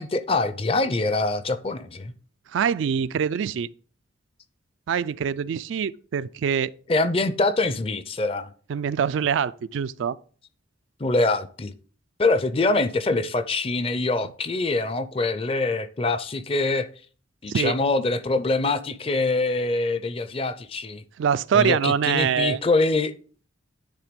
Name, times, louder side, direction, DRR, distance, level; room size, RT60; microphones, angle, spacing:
voice 1, 0.0-2.1 6.9-8.5 11.0-11.7 12.2-16.9 17.4-21.0 21.5-23.1, left 3 dB, 30° left, 0.5 m, -24 dB
voice 2, 2.5-3.7 4.9-6.7 8.7-10.2 17.5-17.8 21.2-22.6, right 7 dB, 70° right, 0.3 m, -24 dB
10.0 x 3.4 x 5.1 m
head